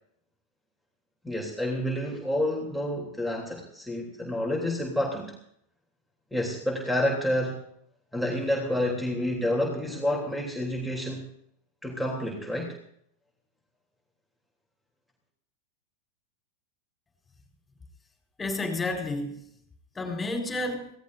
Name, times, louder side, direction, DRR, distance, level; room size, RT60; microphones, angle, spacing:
voice 1, 1.2-5.3 6.3-7.6 8.1-11.3 11.8-12.7, left 1 dB, ahead, 1 dB, 3.3 m, -29 dB
voice 2, 18.4-19.4 19.9-20.9, left 2 dB, 15° left, 3 dB, 4.3 m, -30 dB
25.0 x 17.5 x 2.7 m, 0.71 s
figure-of-eight pair, 90°, 0 cm